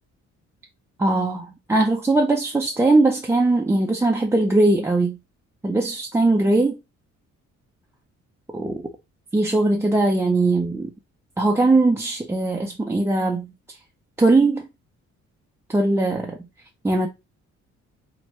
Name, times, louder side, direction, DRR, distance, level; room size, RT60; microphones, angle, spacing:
voice 1, 1.0-5.2 5.6-6.8 8.5-8.8 9.3-10.9 11.4-13.8 14.2-14.7 15.7-16.4 16.8-17.1, right 2 dB, 10° right, 0.4 m, -20 dB
2.8 x 2.2 x 3.0 m
cardioid pair, 90°, 30 cm